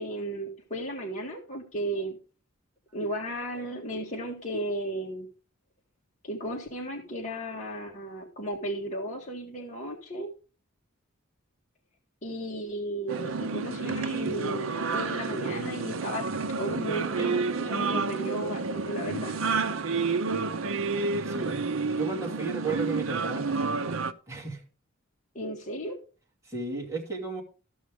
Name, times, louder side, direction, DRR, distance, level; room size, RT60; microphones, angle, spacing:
voice 1, 0.0-2.2 2.9-5.3 6.2-10.3 12.2-16.2 16.6-19.4 25.4-26.0, right 1 dB, 35° left, 1.8 m, -34 dB
sound 1, 13.1-24.1, right 4 dB, 70° right, 0.6 m, -30 dB
voice 2, 21.2-21.6 21.9-24.0 24.3-24.6 26.4-27.4, right 4 dB, 15° right, 2.7 m, -34 dB
14.5 x 6.3 x 3.5 m
head